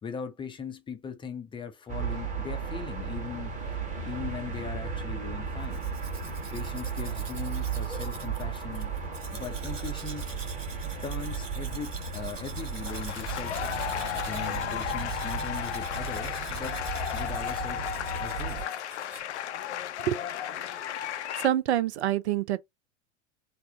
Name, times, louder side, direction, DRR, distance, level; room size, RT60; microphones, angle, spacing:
voice 1, 0.0-3.6 4.0-5.8 6.5-8.9 9.3-10.3 11.0-16.8 17.1-17.9 18.2-18.6, left 6 dB, 15° left, 0.5 m, -39 dB
sound 1, 1.9-18.6, right 5 dB, 20° right, 1.2 m, -35 dB
Domestic sounds home sounds, 5.6-19.2, right 4 dB, 85° right, 0.9 m, -46 dB
sound 2, 12.6-21.5, left 10 dB, 65° left, 0.5 m, -34 dB
voice 2, 21.4-22.6, right 12 dB, 65° right, 0.5 m, -26 dB
3.4 x 2.0 x 3.5 m
figure-of-eight pair, 90°, 37 cm